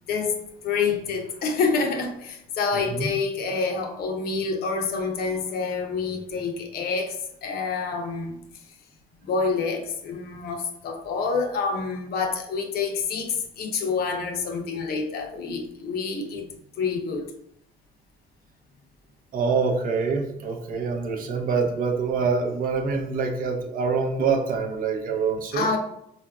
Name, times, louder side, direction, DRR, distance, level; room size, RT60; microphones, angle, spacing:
voice 1, 0.1-0.4 0.6-7.2 7.4-8.4 9.2-16.5 16.8-17.3 25.5-25.8, left 4 dB, 65° left, 4 dB, 0.6 m, -27 dB
voice 2, 2.7-3.1 19.3-25.8, right 5 dB, 55° right, 4 dB, 0.6 m, -25 dB
4.0 x 2.4 x 2.3 m, 0.75 s
cardioid pair, 110°, 17 cm